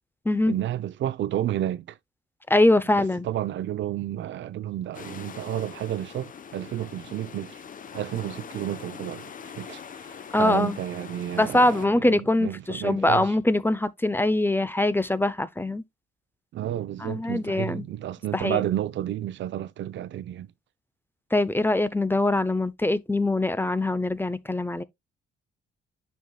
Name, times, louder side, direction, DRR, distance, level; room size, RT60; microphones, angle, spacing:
voice 1, 0.5-2.0 2.9-7.6 7.9-13.3 16.5-20.5, right 12 dB, 70° right, 0.7 m, -31 dB
voice 2, 2.5-3.3 10.3-10.8 11.4-15.8 17.0-17.8 18.3-18.6 21.3-24.8, left 2 dB, 10° left, 0.6 m, -23 dB
sound 1, 4.9-11.9, left 7 dB, 45° left, 0.8 m, -42 dB
9.3 x 5.7 x 2.3 m
cardioid pair, 90°, 20 cm